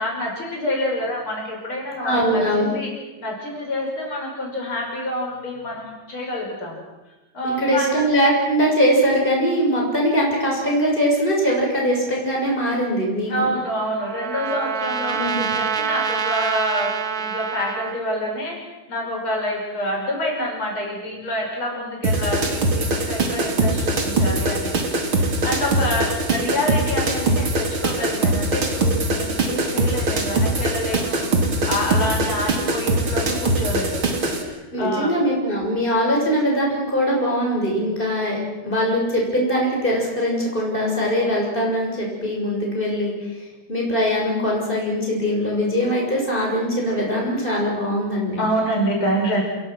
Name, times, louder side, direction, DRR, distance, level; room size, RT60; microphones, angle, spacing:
voice 1, 0.0-2.9 3.2-6.8 7.3-8.0 13.3-18.6 18.9-34.0 34.3-35.1 48.4-49.4, equal, 90° left, -1 dB, 6.7 m, -27 dB
voice 2, 2.0-2.8 7.4-13.3 15.1-15.5 34.7-43.1 43.7-48.4, equal, 25° left, -2 dB, 7.1 m, -21 dB
Trumpet, 13.4-18.0, right 7 dB, 50° right, 1.6 m, -26 dB
sound 1, 22.0-34.4, right 2 dB, 80° right, 3.7 m, -22 dB
28.5 x 22.5 x 6.3 m, 1.1 s
omnidirectional pair, 2.3 m